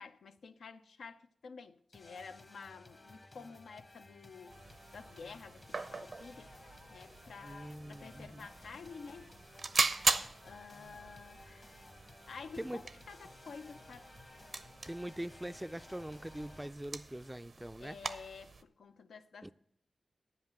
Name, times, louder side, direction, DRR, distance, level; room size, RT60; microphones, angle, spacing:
voice 1, 0.0-4.6 4.9-6.5 6.9-9.3 10.4-11.7 12.3-14.1 17.8-19.5, left 5 dB, 90° left, 0.5 m, -50 dB
sound 1, 1.9-16.7, left 2 dB, 50° left, 1.1 m, -56 dB
sound 2, 4.5-18.6, right 3 dB, 65° right, 0.6 m, -40 dB
voice 2, 7.4-8.5 12.6-12.8 14.9-18.2 19.4-19.5, right 1 dB, 10° right, 0.3 m, -43 dB
9.7 x 5.9 x 7.5 m
cardioid pair, 40°, 0 cm